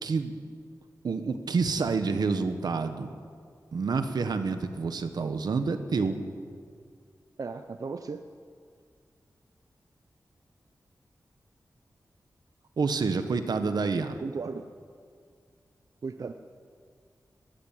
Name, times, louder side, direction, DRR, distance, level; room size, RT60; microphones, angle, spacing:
voice 1, 0.0-0.3 1.0-3.1 3.7-6.2 12.8-14.2, right 4 dB, 85° right, 8 dB, 1.6 m, -28 dB
voice 2, 7.4-8.2 14.2-14.7 16.0-16.3, right 4 dB, 60° right, 8 dB, 0.8 m, -35 dB
20.5 x 15.0 x 9.3 m, 2.1 s
wide cardioid pair, 120°, 7 cm